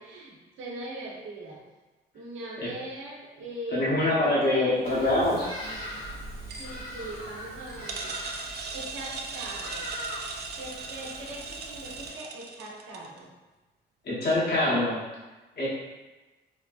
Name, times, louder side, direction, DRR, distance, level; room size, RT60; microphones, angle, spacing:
voice 1, 0.0-1.6 2.1-5.3 6.6-8.1 8.7-9.8 10.6-13.3, right 1 dB, 75° right, -4 dB, 0.9 m, -40 dB
voice 2, 3.7-5.5 14.0-15.0 15.6-15.7, left 1 dB, 55° left, -7 dB, 1.1 m, -24 dB
Bird vocalization bird call bird song, 4.8-12.1, left 1 dB, 80° left, 1.2 m, -41 dB
sound 1, 5.7-13.2, right 4 dB, 55° right, 0.5 m, -39 dB
4.2 x 2.2 x 2.4 m, 1.1 s
supercardioid pair, 70°, 20 cm